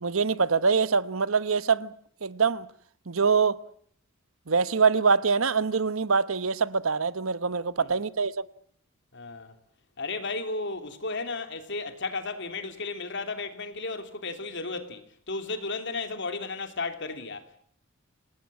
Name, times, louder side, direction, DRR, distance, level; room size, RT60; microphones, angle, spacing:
voice 1, 0.0-1.9 2.2-2.7 3.1-3.6 4.5-8.4, right 5 dB, 75° right, 1.0 m, -24 dB
voice 2, 9.1-9.5 10.0-17.6, left 3 dB, 60° left, 3.2 m, -34 dB
27.0 x 19.0 x 7.6 m
head